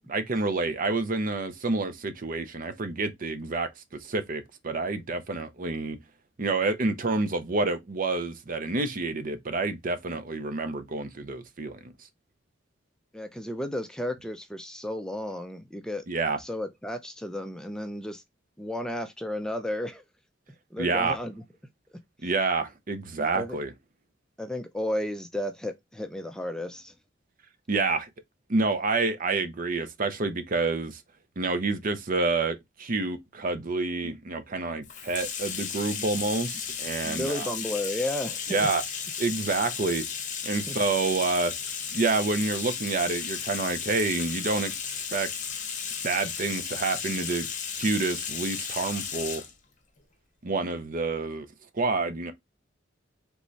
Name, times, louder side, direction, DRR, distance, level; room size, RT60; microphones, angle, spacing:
voice 1, 0.1-3.7 4.0-6.0 6.4-11.9 16.1-16.4 20.8-21.2 22.2-23.7 27.7-28.1 28.5-31.0 31.4-37.5 38.5-38.8 39.2-40.0 40.4-41.5 41.9-45.3 46.0-47.5 47.8-49.4 50.4-51.5 51.7-52.3, right 3 dB, 45° right, 0.6 m, -28 dB
voice 2, 13.1-16.0 16.4-18.2 18.6-20.0 20.7-21.4 23.3-23.6 24.4-26.9 35.9-36.0 37.0-38.7 40.7-40.8, left 1 dB, 5° left, 0.5 m, -33 dB
Bathtub (filling or washing), 34.8-49.5, left 7 dB, 40° left, 1.0 m, -34 dB
3.5 x 3.1 x 4.0 m
head